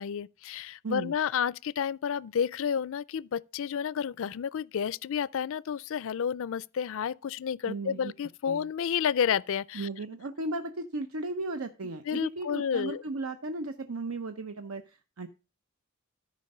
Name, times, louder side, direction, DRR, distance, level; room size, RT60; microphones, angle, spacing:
voice 1, 0.0-9.9 12.1-13.0, left 7 dB, 65° left, 0.4 m, -30 dB
voice 2, 7.7-8.1 8.5-8.7 9.7-15.3, right 2 dB, 75° right, 0.8 m, -36 dB
13.0 x 5.2 x 5.4 m
head